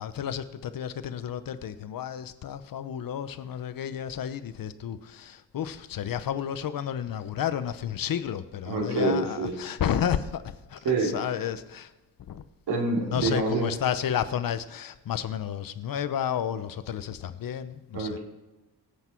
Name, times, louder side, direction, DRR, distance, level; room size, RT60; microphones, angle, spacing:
voice 1, 0.0-10.4 10.7-11.9 12.3-12.4 13.1-18.2, left 9 dB, 55° left, 12 dB, 0.9 m, -31 dB
voice 2, 8.7-9.6 10.8-11.2 12.7-13.7 17.9-18.2, right 3 dB, 75° right, -1 dB, 3.8 m, -26 dB
23.5 x 8.4 x 4.6 m, 1.1 s
cardioid pair, 135°, 39 cm